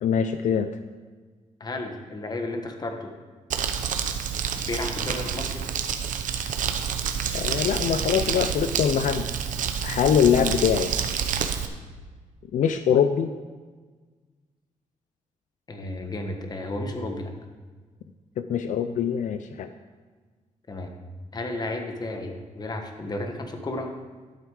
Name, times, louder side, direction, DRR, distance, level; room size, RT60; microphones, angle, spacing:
voice 1, 0.0-0.7 7.3-9.3 9.8-10.9 12.5-13.3 18.4-19.7, left 8 dB, 75° left, 9 dB, 0.5 m, -23 dB
voice 2, 1.6-3.1 4.5-5.6 15.7-17.3 20.7-20.9 21.3-23.9, left 2 dB, 30° left, 4 dB, 1.4 m, -33 dB
Crumpling crinkling, 3.5-11.7, right 7 dB, 80° right, 0.9 m, -28 dB
12.0 x 7.9 x 4.9 m, 1.4 s
cardioid pair, 130°, 13 cm